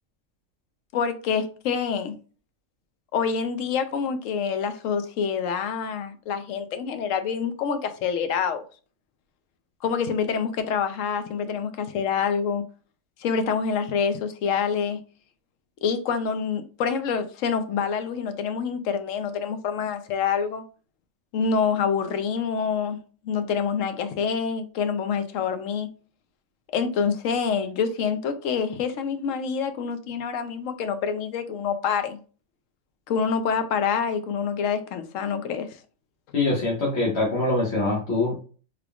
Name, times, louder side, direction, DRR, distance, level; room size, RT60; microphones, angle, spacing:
voice 1, 0.9-2.1 3.1-8.6 9.8-12.6 13.2-15.0 15.8-20.6 21.3-23.0 23.2-25.9 26.7-32.2 33.1-35.7, left 6 dB, 80° left, 1.0 m, -26 dB
voice 2, 36.3-38.4, left 2 dB, 55° left, 1.3 m, -24 dB
3.6 x 3.5 x 2.3 m
omnidirectional pair, 1.4 m